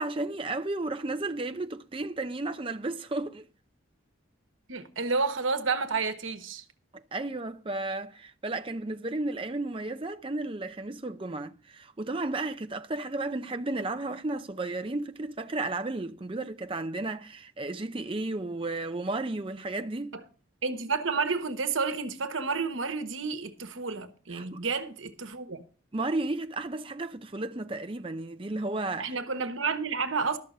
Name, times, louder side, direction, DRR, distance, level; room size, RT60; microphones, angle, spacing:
voice 1, 0.0-3.4 7.1-20.2 24.3-24.6 25.9-29.1, right 2 dB, 25° right, 0.6 m, -33 dB
voice 2, 4.7-6.6 20.1-20.2 20.6-25.6 29.0-30.4, right 4 dB, 75° right, 1.2 m, -30 dB
13.0 x 6.3 x 6.5 m
head